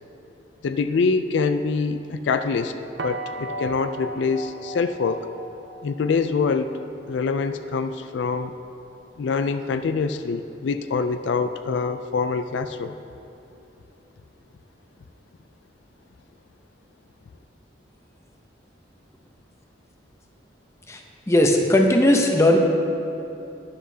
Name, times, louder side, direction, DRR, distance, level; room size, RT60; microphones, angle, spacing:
voice 1, 0.6-2.7 3.0-5.3 5.8-6.7 7.1-8.6 9.2-12.9, left 4 dB, 75° left, 10 dB, 0.3 m, -25 dB
sound 1, 3.0-8.8, right 2 dB, 70° right, 0.6 m, -37 dB
voice 2, 21.3-22.6, left 1 dB, 15° left, 2 dB, 0.7 m, -17 dB
12.5 x 10.0 x 2.8 m, 2.8 s
head